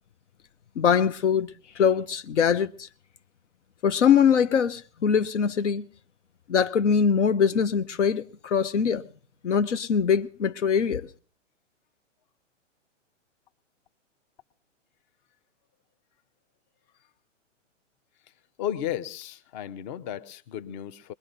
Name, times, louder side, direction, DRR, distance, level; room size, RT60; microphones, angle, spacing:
voice 1, 0.8-1.5 1.8-2.9 3.8-5.8 6.5-9.0 9.4-11.1, left 7 dB, 70° left, 0.7 m, -22 dB
voice 2, 18.6-21.1, left 10 dB, 35° left, 0.8 m, -34 dB
21.5 x 21.0 x 2.6 m
figure-of-eight pair, 115°, 37 cm